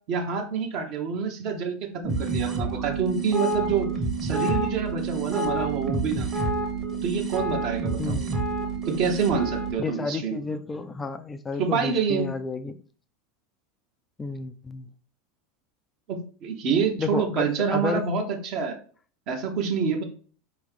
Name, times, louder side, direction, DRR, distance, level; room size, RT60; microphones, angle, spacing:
voice 1, 0.1-3.9 4.2-6.3 7.0-8.2 8.9-10.4 11.6-12.3 16.1-18.8 19.3-20.0, right 6 dB, 50° right, 1.0 m, -27 dB
sound 1, 2.0-9.7, right 3 dB, 30° right, 1.2 m, -28 dB
voice 2, 9.8-12.8 14.2-14.9 17.0-18.1, left 4 dB, 20° left, 0.3 m, -31 dB
4.8 x 3.0 x 3.5 m
figure-of-eight pair, 80°, 0 cm